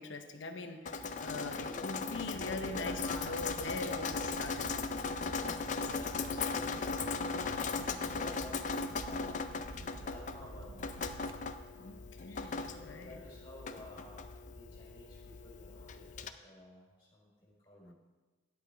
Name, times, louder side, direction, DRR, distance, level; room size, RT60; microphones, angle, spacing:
voice 1, 0.0-4.8 11.7-13.2 17.9-18.0, left 3 dB, 75° left, 6 dB, 0.8 m, -42 dB
Drip, 0.9-16.3, left 4 dB, 40° left, 0.4 m, -38 dB
sound 1, 2.1-11.5, right 3 dB, 85° right, 0.5 m, -50 dB
voice 2, 2.3-3.8 5.6-9.5 9.8-10.9 12.2-17.9, left 2 dB, 25° left, -4 dB, 3.4 m, -52 dB
10.5 x 8.1 x 3.4 m, 1.3 s
head